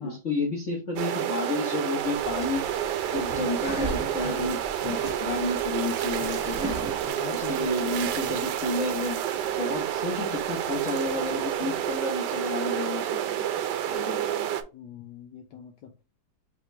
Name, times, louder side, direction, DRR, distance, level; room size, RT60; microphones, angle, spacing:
voice 1, 0.0-2.6 3.1-6.9 7.3-9.2 9.5-13.5 13.9-14.5, left 2 dB, 45° left, 1.3 m, -31 dB
sound 1, 1.0-14.6, right 10 dB, 75° right, 1.1 m, -29 dB
sound 2, 2.0-7.1, right 2 dB, 15° right, 1.2 m, -37 dB
sound 3, 2.8-12.0, right 11 dB, 90° right, 1.4 m, -42 dB
voice 2, 4.2-4.6 7.1-8.5 14.7-16.0, left 8 dB, 75° left, 1.2 m, -41 dB
5.6 x 2.9 x 3.1 m
omnidirectional pair, 2.1 m